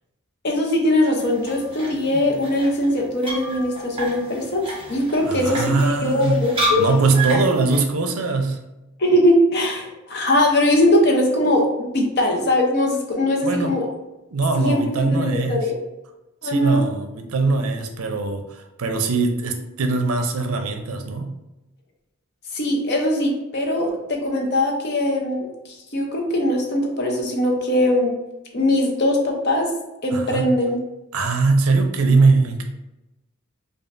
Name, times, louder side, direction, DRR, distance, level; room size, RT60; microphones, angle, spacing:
voice 1, 0.4-6.9 9.0-13.9 14.6-15.7 16.4-16.8 22.5-25.5 25.9-28.1 28.5-29.7 30.0-30.8, left 1 dB, 50° left, 1 dB, 0.8 m, -21 dB
sound 1, 1.2-7.8, right 1 dB, 25° right, 1.1 m, -30 dB
voice 2, 5.2-6.5 6.8-8.6 13.4-13.7 14.3-15.7 16.4-21.3 30.1-30.5 31.1-32.6, right 3 dB, 75° right, 5 dB, 0.5 m, -21 dB
5.2 x 2.3 x 2.6 m, 0.98 s
head